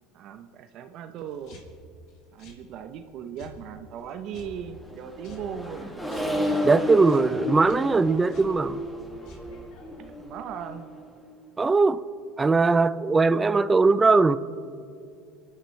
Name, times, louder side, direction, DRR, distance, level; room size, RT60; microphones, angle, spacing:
voice 1, 0.1-1.6 2.3-6.0 6.5-6.6 10.0-10.9, right 8 dB, 55° right, 0.9 m, -38 dB
sound 1, 1.2-10.1, left 2 dB, 65° left, 2.9 m, -51 dB
Accelerating revving vroom, 4.6-11.2, left 1 dB, 5° left, 2.2 m, -32 dB
voice 2, 6.6-8.8 11.6-12.0 12.4-14.4, right 3 dB, 20° right, 0.6 m, -20 dB
30.0 x 11.0 x 3.3 m
hypercardioid pair, 90°, 0 cm